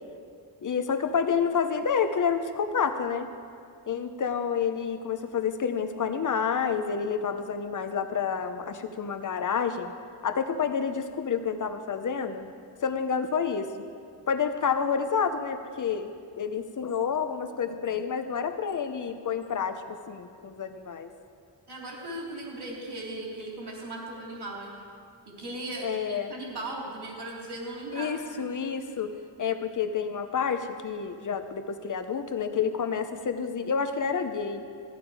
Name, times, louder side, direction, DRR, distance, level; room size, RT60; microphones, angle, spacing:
voice 1, 0.6-3.3 3.9-9.9 10.2-12.5 12.8-13.7 14.3-21.1 25.8-26.3 27.9-29.1 29.4-34.6, left 6 dB, 40° left, 8 dB, 0.8 m, -29 dB
voice 2, 21.7-24.7 25.3-28.4, right 2 dB, 60° right, -2 dB, 2.9 m, -38 dB
15.0 x 10.5 x 4.8 m, 2.3 s
wide cardioid pair, 155°, 45 cm